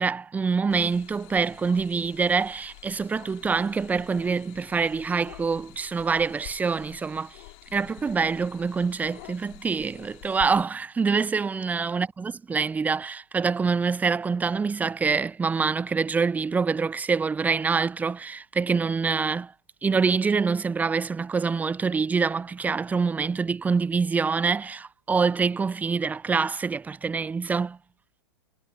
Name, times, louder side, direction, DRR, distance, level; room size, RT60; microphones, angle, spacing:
voice 1, 0.0-7.4 7.7-19.5 19.8-27.8, right 5 dB, 10° right, 0.6 m, -25 dB
sound 1, 0.7-10.6, left 38 dB, 50° left, 3.0 m, -48 dB
hypercardioid pair, 100°, 13 cm